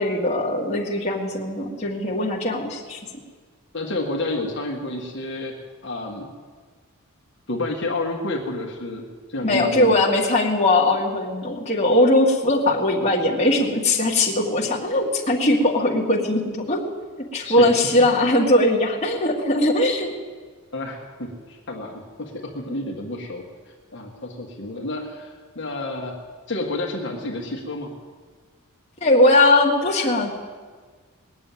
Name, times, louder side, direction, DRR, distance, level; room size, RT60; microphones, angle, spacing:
voice 1, 0.0-3.0 9.4-16.9 17.3-20.1 29.0-30.3, left 1 dB, 30° left, -3 dB, 2.1 m, -20 dB
voice 2, 3.7-5.5 5.8-6.3 7.5-10.0 17.4-17.7 20.7-26.2 26.5-27.9, left 2 dB, 55° left, -1 dB, 1.8 m, -30 dB
20.5 x 7.1 x 9.2 m, 1.5 s
head